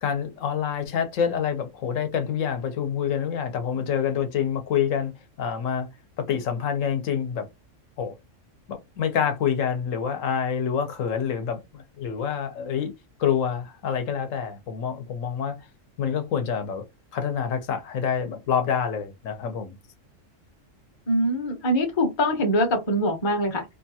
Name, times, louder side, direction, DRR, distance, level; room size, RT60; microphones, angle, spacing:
voice 1, 0.0-5.1 5.4-5.9 6.2-7.5 8.0-8.1 8.7-12.9 13.2-15.6 16.0-16.8 17.1-19.7, left 7 dB, 80° left, 1.0 m, -27 dB
voice 2, 21.1-23.6, equal, 30° left, 0.6 m, -23 dB
2.7 x 2.3 x 2.7 m
omnidirectional pair, 1.3 m